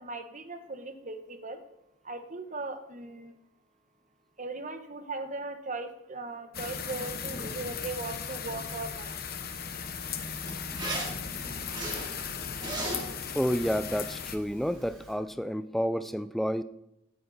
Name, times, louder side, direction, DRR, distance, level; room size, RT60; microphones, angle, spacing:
voice 1, 0.0-1.6 2.0-3.3 4.4-9.1, right 3 dB, 40° right, 8 dB, 1.2 m, -38 dB
sound 1, 6.5-14.4, left 6 dB, 50° left, 1.0 m, -37 dB
Zipper (clothing), 8.4-15.1, right 1 dB, 20° right, 3.1 m, -41 dB
voice 2, 13.4-16.6, equal, ahead, 13 dB, 0.4 m, -30 dB
17.0 x 10.0 x 4.2 m, 0.88 s
head